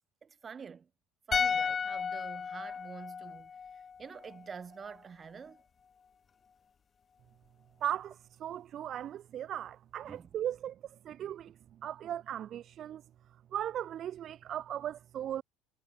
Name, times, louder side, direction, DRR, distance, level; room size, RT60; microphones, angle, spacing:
voice 1, 0.2-0.9 1.3-5.6 10.1-10.3, right 6 dB, 35° right, 3.4 m, -47 dB
sound 1, 1.3-4.5 4.8-4.9, left 6 dB, 35° left, 0.9 m, -34 dB
voice 2, 7.8-11.5 11.8-13.0 13.5-15.4, right 11 dB, 50° right, 1.9 m, -37 dB
supercardioid pair, 85°, 0 cm